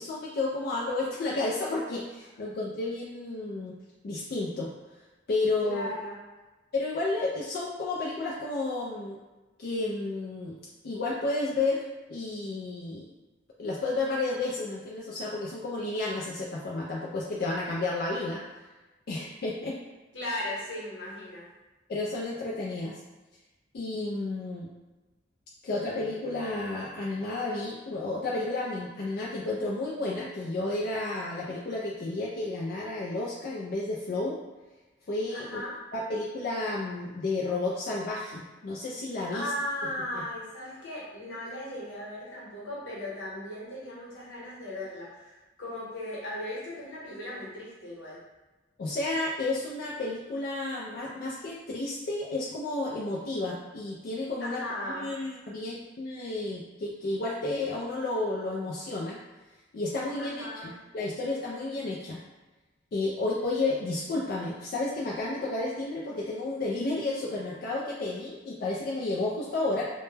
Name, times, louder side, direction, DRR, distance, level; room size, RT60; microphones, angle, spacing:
voice 1, 0.0-3.8 4.0-4.7 5.3-5.9 6.7-9.2 9.6-13.1 13.6-18.4 19.1-19.8 21.9-23.0 23.7-24.7 25.6-34.4 35.1-35.6 35.9-39.5 40.1-40.2 48.8-54.6 54.9-59.2 59.7-62.2 62.9-69.9, left 2 dB, 55° left, -5 dB, 0.3 m, -31 dB
voice 2, 5.6-6.2 20.1-21.4 35.3-35.8 39.3-48.2 54.4-55.1 60.2-60.7, left 1 dB, 85° left, -7 dB, 1.0 m, -37 dB
2.1 x 2.1 x 3.1 m, 1.2 s
head